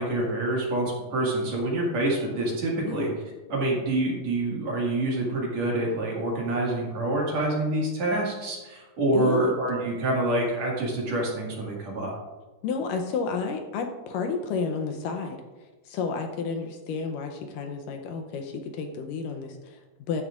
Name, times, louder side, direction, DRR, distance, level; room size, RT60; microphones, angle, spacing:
voice 1, 0.0-3.1 3.5-12.1, right 1 dB, 55° right, -3 dB, 2.9 m, -26 dB
voice 2, 9.1-9.5 12.6-15.4 15.9-20.2, left 5 dB, 80° left, 5 dB, 2.2 m, -31 dB
13.0 x 9.8 x 2.5 m, 1.2 s
omnidirectional pair, 4.1 m